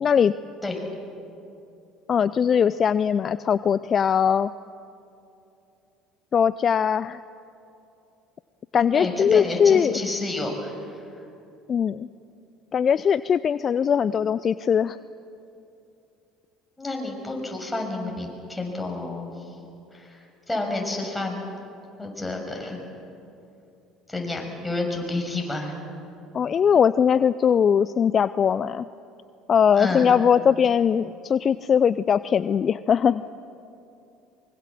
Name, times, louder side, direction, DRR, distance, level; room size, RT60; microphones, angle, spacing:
voice 1, 0.0-0.3 2.1-4.5 6.3-7.2 8.7-9.9 11.7-12.1 12.7-15.0 26.3-28.9 29.5-33.3, left 7 dB, 40° left, 16 dB, 0.5 m, -20 dB
voice 2, 8.9-11.0 16.8-19.3 19.9-20.2 20.5-21.5 22.0-22.8 24.1-25.7 29.8-30.1, left 2 dB, 10° left, 0 dB, 6.7 m, -30 dB
24.5 x 23.0 x 7.6 m, 2.7 s
hypercardioid pair, 65°, 0 cm